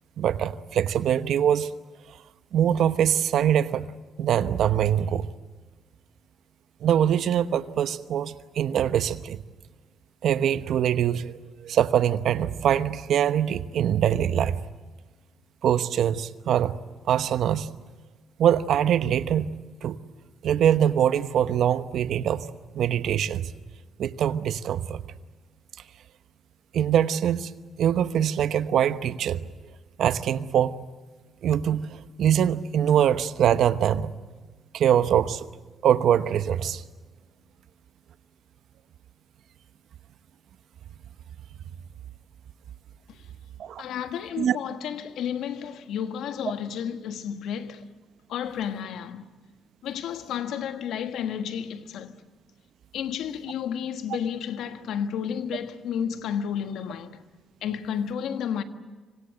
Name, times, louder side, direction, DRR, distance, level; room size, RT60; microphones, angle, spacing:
voice 1, 0.2-1.7 2.5-3.9 4.2-5.3 6.8-9.4 10.2-11.3 11.6-14.6 15.6-16.7 17.1-17.7 18.4-19.5 19.8-20.0 20.4-22.5 22.7-23.5 24.0-25.0 26.7-27.5 27.8-29.4 30.0-30.8 31.4-31.9 32.2-34.1 34.7-35.5 35.8-36.8 43.6-43.8 44.4-44.6, right 9 dB, 70° right, 1.0 m, -23 dB
voice 2, 43.8-47.8 48.3-49.2 49.8-52.2 52.9-57.2 57.6-58.6, left 8 dB, 80° left, 1.5 m, -31 dB
26.5 x 25.5 x 7.9 m
supercardioid pair, 60°, 0 cm